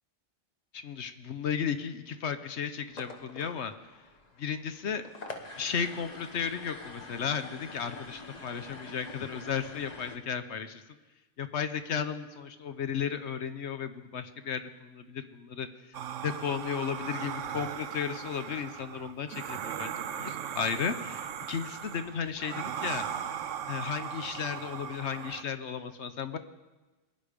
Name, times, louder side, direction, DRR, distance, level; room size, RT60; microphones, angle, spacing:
voice 1, 0.7-3.7 4.4-5.0 5.6-10.8 11.4-15.7 16.2-23.1 23.7-26.4, left 7 dB, 65° left, 10 dB, 1.1 m, -34 dB
sound 1, 2.8-10.2, left 2 dB, 35° left, 1.2 m, -46 dB
sound 2, 15.9-25.4, right 9 dB, 75° right, 1.0 m, -38 dB
22.5 x 10.0 x 5.1 m, 1.2 s
omnidirectional pair, 1.3 m